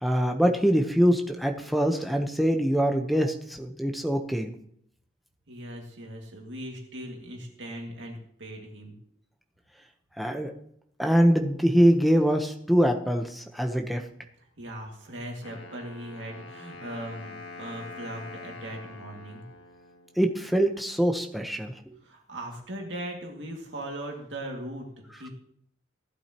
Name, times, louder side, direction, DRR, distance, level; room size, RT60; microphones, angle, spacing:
voice 1, 0.0-4.5 10.2-10.5 11.0-14.0 20.2-21.9, equal, ahead, 3 dB, 0.9 m, -24 dB
voice 2, 5.5-8.9 14.6-19.4 22.0-25.3, right 1 dB, 70° right, 0 dB, 2.3 m, -39 dB
Wind instrument woodwind instrument, 15.4-20.4, left 3 dB, 75° left, 1.7 m, -45 dB
16.0 x 11.5 x 3.0 m, 0.69 s
head